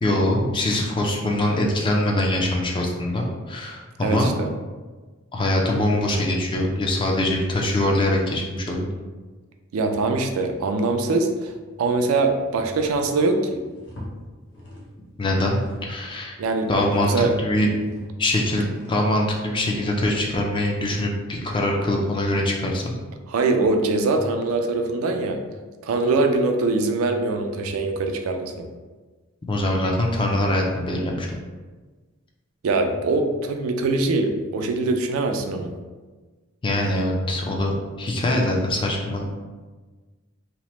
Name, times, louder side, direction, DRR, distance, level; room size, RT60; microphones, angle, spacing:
voice 1, 0.0-4.3 5.3-8.9 15.2-16.4 16.7-17.1 17.4-17.7 18.2-22.9 29.5-31.3 36.6-39.3, left 1 dB, 25° left, 0 dB, 0.4 m, -23 dB
voice 2, 4.0-4.5 9.7-11.5 11.8-13.6 16.4-17.3 23.3-25.4 25.8-28.7 32.6-35.7, right 3 dB, 90° right, 5 dB, 0.3 m, -23 dB
sound 1, 11.5-12.0 12.4-15.0 15.3-17.1 17.4-22.9, left 1 dB, 60° left, 0.8 m, -43 dB
2.9 x 2.0 x 3.0 m, 1.3 s
head